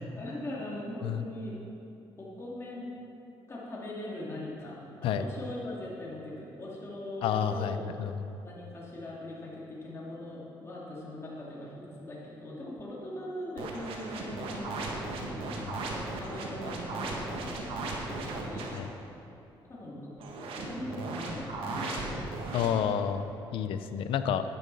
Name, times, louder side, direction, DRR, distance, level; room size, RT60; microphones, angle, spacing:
voice 1, 0.0-1.5 2.2-2.9 3.5-7.9 8.4-15.6 15.9-18.7 19.7-20.1 20.5-23.0, left 1 dB, 30° left, -5 dB, 2.4 m, -41 dB
voice 2, 7.2-8.4 15.6-15.8 18.7-18.9 22.5-24.4, left 8 dB, 75° left, 10 dB, 0.5 m, -30 dB
sound 1, 13.6-18.8 20.2-22.7, right 2 dB, 75° right, 1.5 m, -36 dB
10.5 x 9.5 x 4.1 m, 2.8 s
cardioid pair, 95°, 9 cm